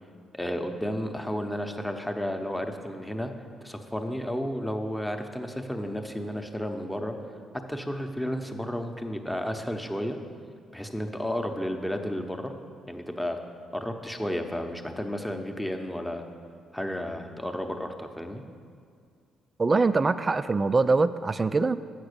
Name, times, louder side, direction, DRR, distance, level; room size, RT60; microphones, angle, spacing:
voice 1, 0.3-3.3 3.6-7.2 7.7-10.2 10.7-12.5 12.9-13.4 13.7-16.2 16.7-18.4, equal, 5° left, 5 dB, 0.8 m, -32 dB
voice 2, 19.6-21.8, right 3 dB, 30° right, 13 dB, 0.3 m, -23 dB
7.9 x 6.0 x 6.6 m, 2.2 s
cardioid pair, 90°, 0 cm